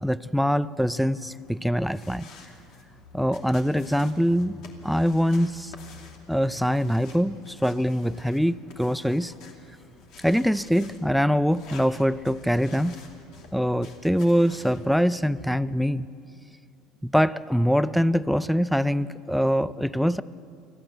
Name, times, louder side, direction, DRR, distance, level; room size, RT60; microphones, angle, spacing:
voice 1, 0.0-2.3 3.1-4.6 4.8-5.7 6.3-9.3 10.2-13.0 13.5-16.1 17.0-20.2, equal, ahead, 17 dB, 0.5 m, -23 dB
sound 1, 1.2-14.9, left 4 dB, 60° left, 2.7 m, -49 dB
24.5 x 15.5 x 8.0 m, 2.5 s
supercardioid pair, 105°, 0 cm